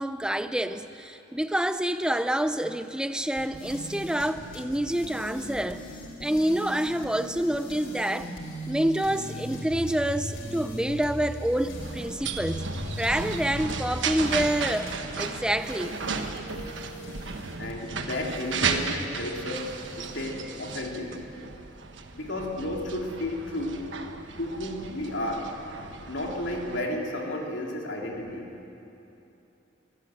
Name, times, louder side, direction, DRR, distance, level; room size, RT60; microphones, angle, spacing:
voice 1, 0.0-5.9 6.2-8.3 8.7-12.7 13.0-16.0, right 1 dB, 5° right, 0.6 m, -27 dB
sound 1, 3.4-20.6, equal, 85° left, 3.2 m, -39 dB
sound 2, 11.7-26.8, right 5 dB, 70° right, 1.3 m, -35 dB
voice 2, 17.6-21.2 22.1-23.9 24.4-25.6 26.1-28.5, left 1 dB, 70° left, 3.2 m, -32 dB
24.5 x 15.5 x 7.8 m
head